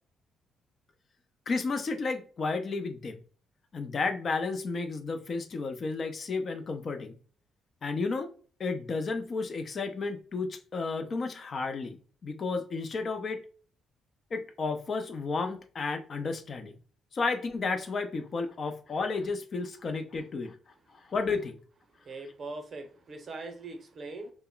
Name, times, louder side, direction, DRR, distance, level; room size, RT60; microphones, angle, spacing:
voice 1, 1.5-3.2 3.7-7.2 7.8-8.3 8.6-13.4 14.3-16.7 17.1-20.6 21.0-21.6, left 4 dB, 45° left, 0.4 m, -32 dB
voice 2, 22.1-24.3, right 3 dB, 45° right, 0.6 m, -41 dB
2.1 x 2.0 x 3.7 m
cardioid pair, 90°, 0 cm